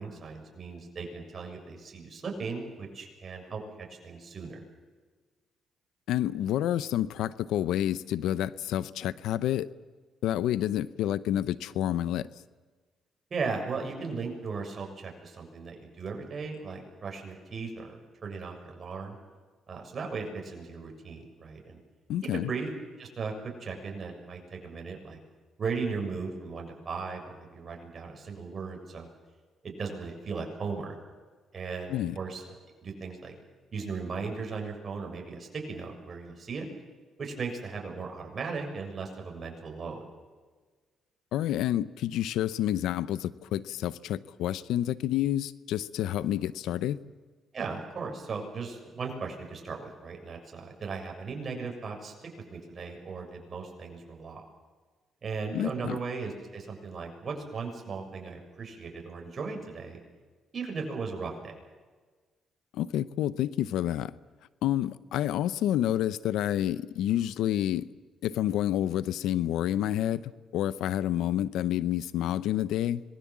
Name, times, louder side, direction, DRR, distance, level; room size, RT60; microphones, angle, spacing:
voice 1, 0.0-3.6 4.0-4.6 13.3-19.2 19.7-21.8 22.2-22.7 23.0-25.2 25.6-29.1 29.6-30.9 31.5-32.4 32.8-33.3 33.7-36.7 37.2-40.0 47.5-52.1 52.5-54.4 55.2-60.0 60.5-61.6, right 4 dB, 45° right, 2 dB, 6.6 m, -37 dB
voice 2, 6.1-9.7 10.2-12.3 22.1-22.5 31.9-32.2 41.3-47.0 55.5-56.0 62.7-64.1 64.6-67.9 68.2-73.0, left 12 dB, 85° left, 17 dB, 0.7 m, -29 dB
26.0 x 21.0 x 7.4 m, 1.4 s
cardioid pair, 90°, 0 cm